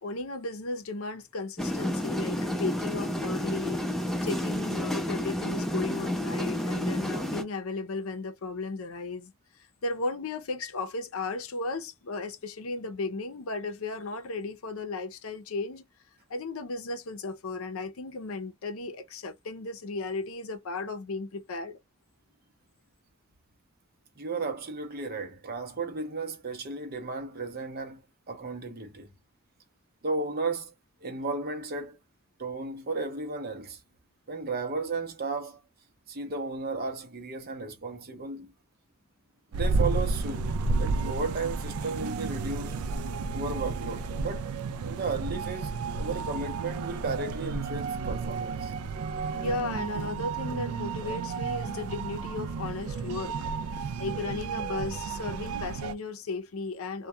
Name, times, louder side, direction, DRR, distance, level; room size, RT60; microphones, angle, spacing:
voice 1, 0.0-3.8 4.2-9.3 9.6-15.8 16.3-21.8 49.3-53.4 54.0-57.1, left 3 dB, 75° left, 0.6 m, -35 dB
sound 1, 1.6-7.4, equal, ahead, 0.4 m, -30 dB
voice 2, 24.2-28.0 28.3-29.1 30.0-30.7 31.0-32.0 32.4-33.8 34.3-35.6 36.1-38.5 39.5-40.5 40.8-42.8 43.3-44.5 44.8-48.7, right 3 dB, 45° right, 0.7 m, -34 dB
sound 2, 39.5-56.0, right 4 dB, 85° right, 0.3 m, -32 dB
2.2 x 2.2 x 2.6 m
head